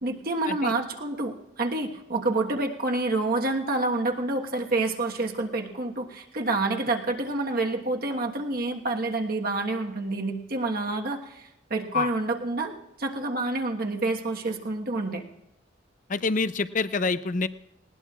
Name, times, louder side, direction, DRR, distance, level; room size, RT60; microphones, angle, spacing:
voice 1, 0.0-12.7 13.0-15.2, right 2 dB, 50° right, 2 dB, 1.4 m, -28 dB
voice 2, 16.1-17.5, left 4 dB, 45° left, 13 dB, 0.6 m, -26 dB
19.5 x 18.5 x 2.4 m, 0.86 s
head